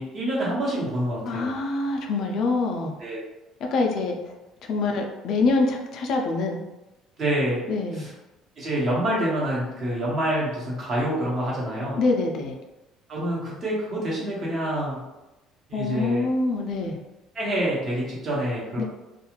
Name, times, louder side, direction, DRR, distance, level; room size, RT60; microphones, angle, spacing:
voice 1, 0.0-1.5 3.0-3.2 7.2-7.6 7.9-8.1 8.6-12.0 13.1-15.0 15.7-16.3 17.3-18.8, right 1 dB, 35° right, -5 dB, 1.0 m, -27 dB
voice 2, 1.3-2.9 3.7-4.3 4.7-6.6 7.7-8.1 11.9-12.6 15.7-17.0 18.8-18.9, left 3 dB, 55° left, 2 dB, 0.4 m, -25 dB
2.4 x 2.3 x 3.0 m, 1.0 s
cardioid pair, 150°, 0 cm